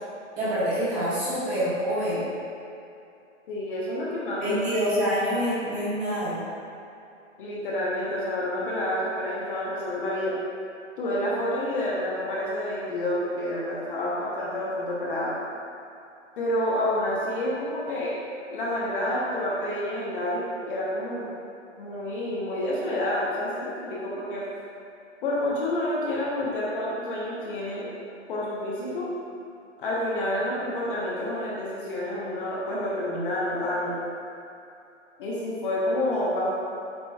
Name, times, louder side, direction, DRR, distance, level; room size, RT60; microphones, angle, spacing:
voice 1, 0.4-2.2 4.4-6.4, equal, 20° right, -11 dB, 1.3 m, -26 dB
voice 2, 3.5-4.6 7.4-10.3 11.0-15.3 16.4-18.2 18.5-21.3 21.8-24.4 25.2-27.9 28.3-29.1 29.8-33.9 35.2-36.5, left 1 dB, 45° left, -6 dB, 0.9 m, -28 dB
7.5 x 2.9 x 2.3 m, 2.6 s
hypercardioid pair, 150°, 38 cm